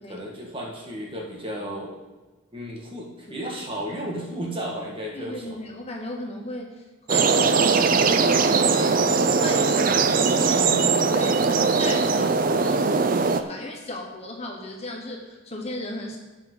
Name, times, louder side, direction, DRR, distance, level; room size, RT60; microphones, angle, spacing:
voice 1, 0.1-1.9 2.5-5.6 10.4-10.8, right 1 dB, 25° right, -2 dB, 1.8 m, -33 dB
voice 2, 5.1-8.4 8.7-9.0 9.3-10.7 11.1-16.2, left 1 dB, 30° left, 1 dB, 1.0 m, -36 dB
sound 1, 7.1-13.4, right 4 dB, 45° right, 0.5 m, -20 dB
16.5 x 5.9 x 3.9 m, 1.2 s
head